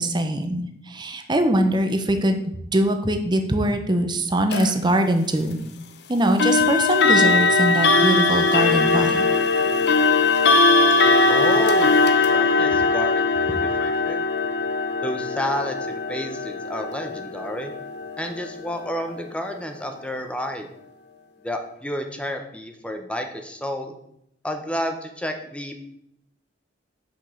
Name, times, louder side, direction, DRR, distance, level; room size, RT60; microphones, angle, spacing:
voice 1, 0.0-5.6 6.1-9.2, right 1 dB, 25° right, 6 dB, 0.9 m, -22 dB
sound 1, 4.5-4.7 6.4-19.2, left 3 dB, 65° left, 0.8 m, -20 dB
voice 2, 11.3-14.2 15.0-17.7 18.2-20.7 21.4-24.0 24.4-25.8, equal, 5° left, 5 dB, 0.8 m, -31 dB
6.1 x 5.4 x 6.6 m, 0.76 s
head